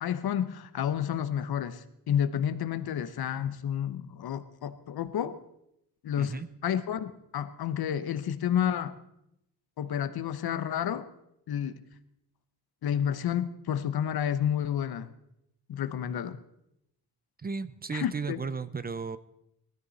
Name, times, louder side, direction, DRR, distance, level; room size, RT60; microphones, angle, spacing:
voice 1, 0.0-5.3 6.0-9.0 9.8-11.1 11.5-11.8 12.8-15.1 15.7-16.4 17.9-18.4, left 9 dB, 80° left, 13 dB, 1.0 m, -30 dB
voice 2, 6.2-6.5 17.4-19.2, right 5 dB, 25° right, 15 dB, 0.5 m, -35 dB
19.5 x 13.5 x 4.1 m, 0.79 s
wide cardioid pair, 145°, 37 cm